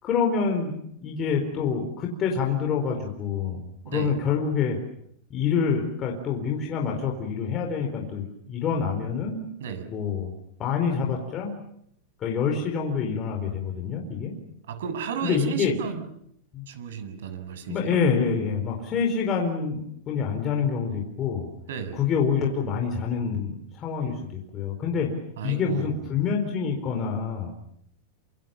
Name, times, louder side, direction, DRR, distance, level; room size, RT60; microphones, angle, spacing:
voice 1, 0.0-0.7 1.0-4.8 5.3-9.4 9.9-10.3 10.6-11.5 12.2-14.3 15.2-15.7 16.5-16.7 17.7-21.5 21.9-25.1 25.4-27.5, left 6 dB, 20° left, 1 dB, 4.3 m, -26 dB
voice 2, 14.7-16.0 16.7-18.0 21.7-22.0 25.4-26.0, right 7 dB, 80° right, 10 dB, 7.3 m, -33 dB
28.5 x 27.0 x 7.2 m, 0.72 s
supercardioid pair, 180°, 0 cm